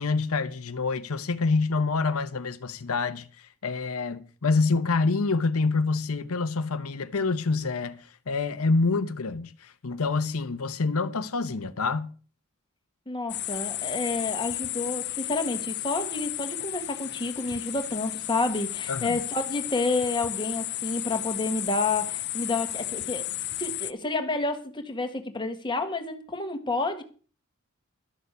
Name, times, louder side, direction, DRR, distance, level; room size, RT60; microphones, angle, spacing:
voice 1, 0.0-12.1 18.9-19.2, left 3 dB, 80° left, 0.8 m, -27 dB
voice 2, 13.1-23.3 23.6-27.0, left 3 dB, 20° left, 1.5 m, -29 dB
sound 1, 13.3-23.9, left 16 dB, 50° left, 0.6 m, -33 dB
12.5 x 6.7 x 8.2 m
head